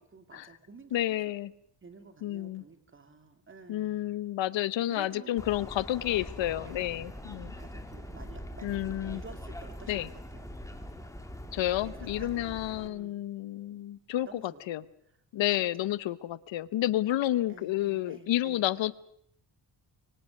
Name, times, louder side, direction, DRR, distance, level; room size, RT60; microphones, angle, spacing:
voice 1, 0.0-1.2 1.8-4.2 4.9-5.4 6.7-6.9 7.5-10.6 11.8-13.2 14.2-14.6 15.8-15.9 17.5-18.7, right 4 dB, 25° right, 8 dB, 2.6 m, -51 dB
voice 2, 0.9-1.5 2.2-2.6 3.7-7.5 8.6-9.2 9.9-10.1 11.5-14.8 15.3-18.9, left 14 dB, 85° left, 18 dB, 0.9 m, -30 dB
sound 1, 5.4-12.9, left 1 dB, 5° left, 2.3 m, -43 dB
26.0 x 24.0 x 6.4 m, 0.71 s
cardioid pair, 135°, 44 cm